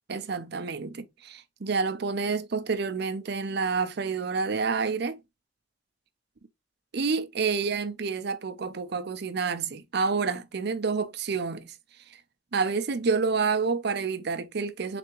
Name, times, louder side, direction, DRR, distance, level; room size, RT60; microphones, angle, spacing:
voice 1, 0.1-5.2 6.9-11.7 12.5-15.0, right 5 dB, 60° right, 0.6 m, -28 dB
4.0 x 3.4 x 3.1 m
head